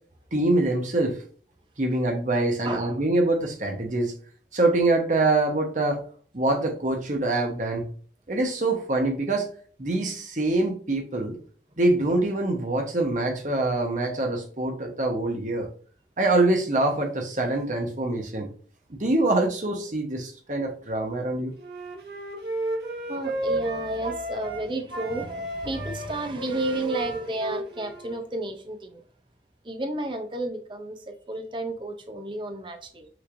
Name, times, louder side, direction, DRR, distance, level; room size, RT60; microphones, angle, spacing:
voice 1, 0.3-1.2 1.8-4.1 4.5-6.0 6.3-7.9 8.3-9.5 9.8-11.3 11.8-15.7 16.2-18.5 18.9-21.5, right 2 dB, 45° right, 3 dB, 1.0 m, -24 dB
voice 2, 2.6-2.9 23.1-29.0 29.6-33.1, right 1 dB, 25° right, 5 dB, 0.6 m, -32 dB
Wind instrument woodwind instrument, 21.6-24.6 24.9-28.2, right 1 dB, 65° right, 1.1 m, -33 dB
6.0 x 3.2 x 2.6 m, 0.44 s
head